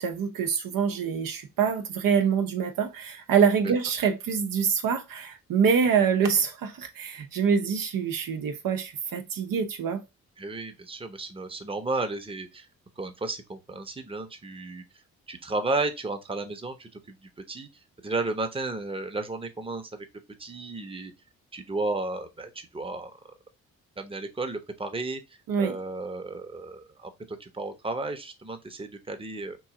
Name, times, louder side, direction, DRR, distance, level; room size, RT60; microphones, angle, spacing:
voice 1, 0.0-10.0 25.5-25.8, right 6 dB, 70° right, 0.7 m, -25 dB
voice 2, 10.4-12.7 13.0-14.8 15.3-17.7 18.0-20.1 20.4-21.1 21.5-23.1 24.0-25.2 25.6-29.6, right 3 dB, 15° right, 0.8 m, -33 dB
3.1 x 2.6 x 3.6 m
supercardioid pair, 50°, 35 cm